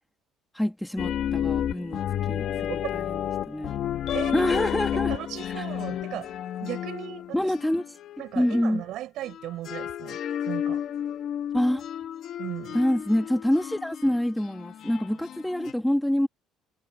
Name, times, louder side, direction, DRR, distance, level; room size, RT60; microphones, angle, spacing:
voice 1, 0.5-2.0 2.3-3.7 4.3-5.1 5.6-5.7 7.3-7.8 8.3-8.8 11.5-11.8 12.7-16.3, left 1 dB, 5° left, 1.5 m, -26 dB
sound 1, 1.0-8.8 9.3-15.7, left 10 dB, 50° left, 1.0 m, -31 dB
voice 2, 4.1-4.5 4.9-6.3 6.6-7.4 8.2-10.2 10.5-10.8 12.4-12.8, right 14 dB, 65° right, 5.4 m, -36 dB
cardioid pair, 155°, 0 cm